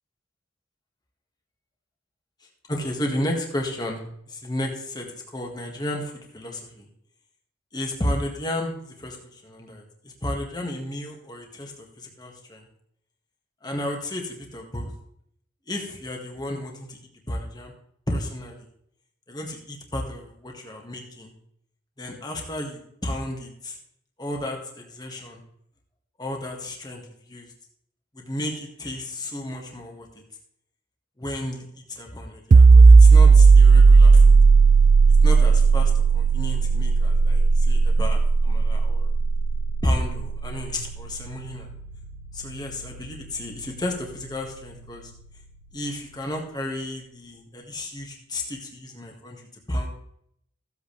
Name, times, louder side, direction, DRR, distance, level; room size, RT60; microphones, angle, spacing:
voice 1, 2.7-6.9 7.7-12.7 13.6-14.9 15.7-17.0 17.3-17.7 18.1-18.7 19.3-21.3 22.0-23.8 24.2-25.4 26.2-27.5 28.1-30.1 31.2-34.4 35.2-39.1 39.8-41.7 42.3-45.1 45.7-49.4 49.7-49.9, left 1 dB, 20° left, 1 dB, 2.0 m, -32 dB
sound 1, 32.5-43.9, right 4 dB, 40° right, 0.3 m, -15 dB
15.0 x 8.3 x 3.5 m, 0.71 s
head